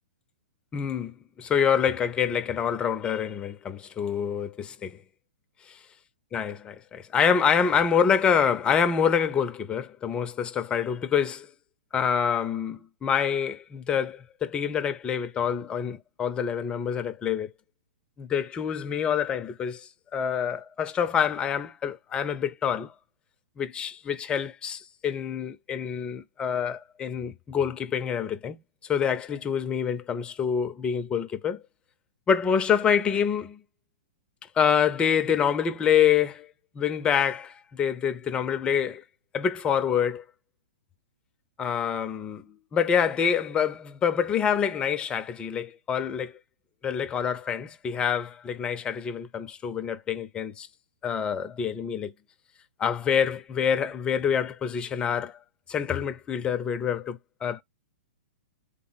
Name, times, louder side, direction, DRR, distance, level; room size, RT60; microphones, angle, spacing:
voice 1, 0.7-5.0 6.3-11.5 11.9-17.5 18.2-22.9 23.6-28.6 28.9-31.6 32.3-33.6 34.6-36.5 36.8-39.0 39.3-40.2 41.6-46.3 46.8-50.7 51.0-52.1 52.8-55.4 55.7-57.6, left 7 dB, 20° left, 0.5 m, -26 dB
3.5 x 2.0 x 3.9 m
hypercardioid pair, 120°, 5 cm